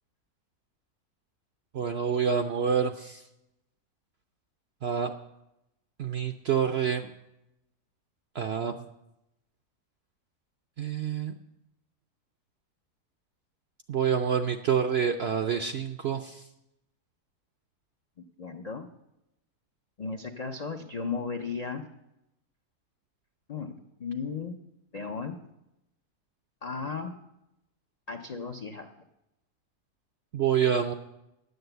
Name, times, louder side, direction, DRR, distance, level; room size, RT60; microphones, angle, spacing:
voice 1, 1.7-3.2 4.8-5.1 6.0-7.1 8.3-8.8 10.8-11.3 13.9-16.4 30.3-30.9, right 7 dB, 70° right, 7 dB, 0.6 m, -27 dB
voice 2, 18.4-18.9 20.0-21.8 23.5-24.6 24.9-25.4 26.6-27.1 28.1-28.9, left 5 dB, 70° left, 4 dB, 0.3 m, -35 dB
9.7 x 7.9 x 7.9 m, 0.89 s
omnidirectional pair, 1.6 m